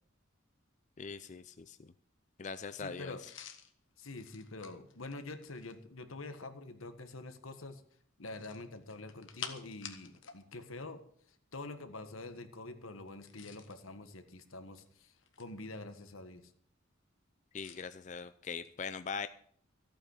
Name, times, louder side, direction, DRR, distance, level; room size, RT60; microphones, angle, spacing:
voice 1, 1.0-1.9 2.4-3.2 17.5-19.3, left 5 dB, 35° left, 12 dB, 0.4 m, -41 dB
voice 2, 2.7-3.2 4.0-7.8 8.2-11.0 11.3-16.5, left 2 dB, 85° left, 8 dB, 1.4 m, -46 dB
sound 1, 3.2-5.8 8.3-10.4 10.7-10.9 13.1-13.8 14.6-15.7 17.6-17.8, left 8 dB, 70° left, 1.5 m, -49 dB
14.5 x 8.7 x 6.6 m, 0.64 s
head